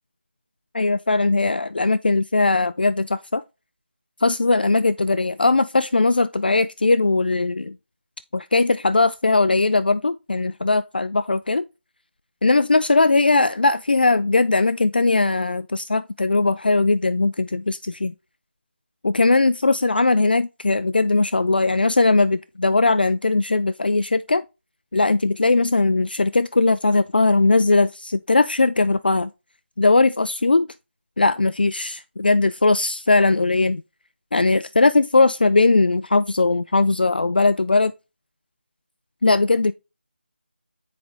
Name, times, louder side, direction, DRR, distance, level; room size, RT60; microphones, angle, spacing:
voice 1, 0.7-3.4 4.2-7.8 8.3-11.6 12.4-18.1 19.0-24.4 24.9-29.3 29.8-30.7 31.2-33.8 34.3-37.9 39.2-39.7, left 3 dB, 50° left, 0.3 m, -19 dB
7.3 x 4.5 x 3.7 m
figure-of-eight pair, 180°, 6 cm